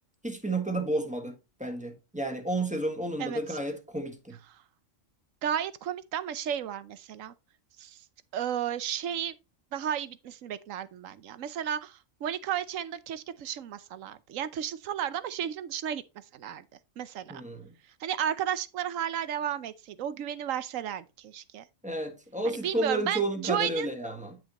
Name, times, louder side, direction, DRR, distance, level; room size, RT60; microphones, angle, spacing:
voice 1, 0.2-4.4 17.3-17.7 21.8-24.4, right 1 dB, 5° right, 1.5 m, -32 dB
voice 2, 5.4-7.3 7.8-8.0 8.3-9.3 9.7-16.0 16.3-16.6 17.0-17.4 18.0-21.6 22.4-23.9, right 9 dB, 85° right, 1.2 m, -33 dB
10.5 x 6.2 x 2.9 m
omnidirectional pair, 1.3 m